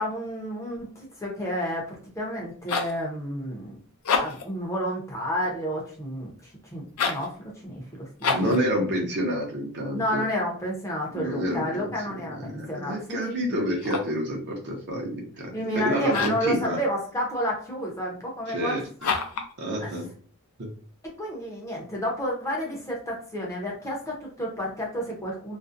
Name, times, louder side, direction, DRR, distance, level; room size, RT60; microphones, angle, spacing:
voice 1, 0.0-3.8 4.2-8.6 9.9-13.7 15.5-18.9 19.8-20.0 21.2-25.6, equal, 15° left, -2 dB, 0.5 m, -31 dB
sound 1, 2.4-3.0 3.9-4.5 6.9-7.3 8.2-8.6 13.7-14.2 16.1-16.5 19.0-19.5, left 5 dB, 70° left, 0.4 m, -28 dB
voice 2, 8.3-10.2 11.1-11.9 12.3-16.8 18.5-18.8 19.6-20.1 20.6-20.7, equal, 50° right, 0 dB, 0.6 m, -28 dB
2.4 x 2.0 x 2.5 m, 0.43 s
head